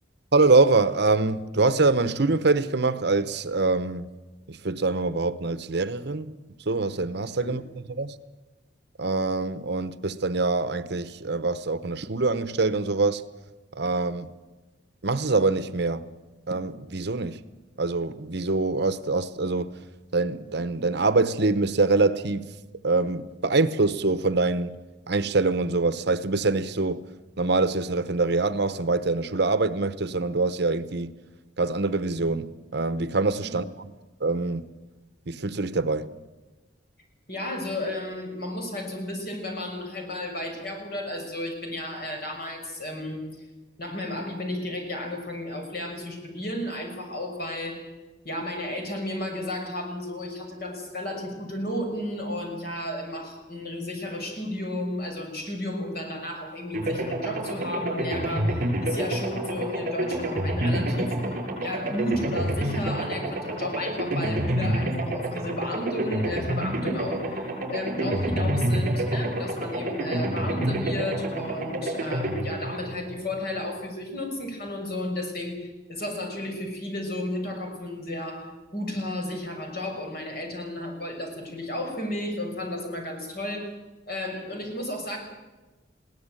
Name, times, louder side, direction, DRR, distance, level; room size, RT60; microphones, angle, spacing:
voice 1, 0.3-4.1 4.5-6.3 6.7-7.6 7.9-8.1 9.0-13.2 13.8-14.3 15.0-16.1 16.5-17.4 17.8-19.7 20.1-22.5 22.8-24.8 25.1-27.0 27.4-31.1 31.6-33.7 34.2-34.7 35.3-36.1, right 3 dB, 60° right, 1.0 m, -24 dB
voice 2, 37.3-43.4 43.8-47.9 48.2-61.4 61.6-83.7 84.1-85.2, left 1 dB, 55° left, 6.5 m, -33 dB
sound 1, 56.7-73.7, right 1 dB, 45° right, 7.4 m, -28 dB
21.5 x 17.0 x 9.0 m
head